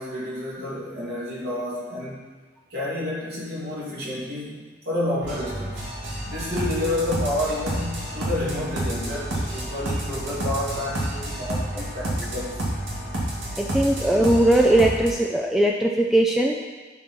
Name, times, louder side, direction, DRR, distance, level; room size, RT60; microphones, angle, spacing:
voice 1, 0.0-2.3 2.7-5.8 6.2-12.6 13.7-13.9, left 1 dB, 60° right, -6 dB, 2.8 m, -30 dB
sound 1, 5.2-15.1, right 1 dB, 80° right, 2.4 m, -29 dB
voice 2, 13.6-16.5, right 1 dB, ahead, 0 dB, 0.5 m, -19 dB
11.0 x 4.7 x 4.6 m, 1.4 s
head